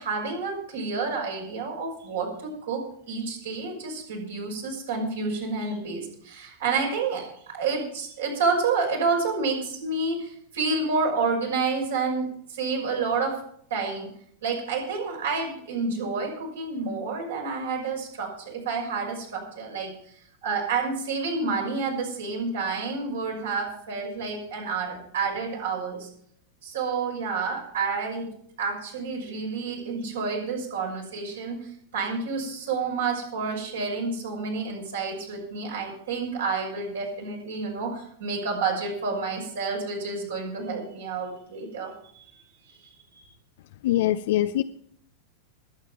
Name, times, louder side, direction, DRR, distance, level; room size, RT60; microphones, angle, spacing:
voice 1, 0.0-13.4 13.7-14.1 14.4-19.9 20.4-26.1 26.6-28.3 28.6-41.9, right 4 dB, 65° right, 0 dB, 5.9 m, -29 dB
voice 2, 43.8-44.6, left 13 dB, 55° left, 10 dB, 0.5 m, -23 dB
21.0 x 9.1 x 4.5 m, 0.66 s
figure-of-eight pair, 90°, 0 cm